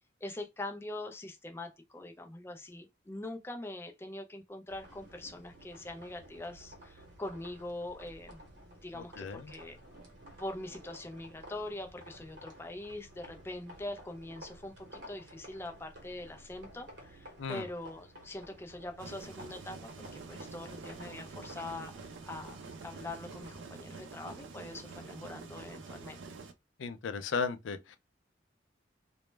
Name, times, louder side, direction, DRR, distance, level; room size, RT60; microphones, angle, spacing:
voice 1, 0.2-8.4 8.8-9.8 10.4-26.2, left 2 dB, 15° left, 0.3 m, -43 dB
sound 1, 4.7-23.6, equal, 65° right, 0.9 m, -53 dB
voice 2, 8.9-9.5 17.4-17.6 26.8-28.0, left 5 dB, 90° left, 0.4 m, -35 dB
sound 2, 19.0-26.5, right 4 dB, 80° right, 0.4 m, -47 dB
2.1 x 2.0 x 3.1 m
head